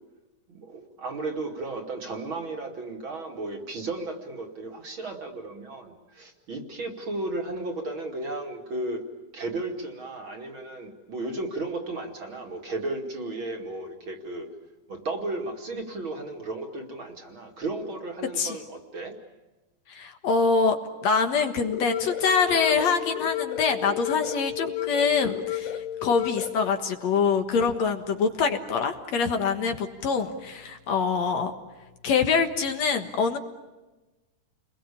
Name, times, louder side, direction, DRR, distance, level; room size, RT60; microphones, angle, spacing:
voice 1, 0.5-9.0 9.3-14.5 14.9-19.2, right 2 dB, 40° right, 2 dB, 3.0 m, -34 dB
voice 2, 19.9-20.8 21.0-31.5 32.0-33.4, left 5 dB, 60° left, 6 dB, 2.6 m, -25 dB
sound 1, 21.7-26.7, left 12 dB, 80° left, 3.1 m, -32 dB
30.0 x 21.5 x 8.6 m, 1.1 s
omnidirectional pair, 3.5 m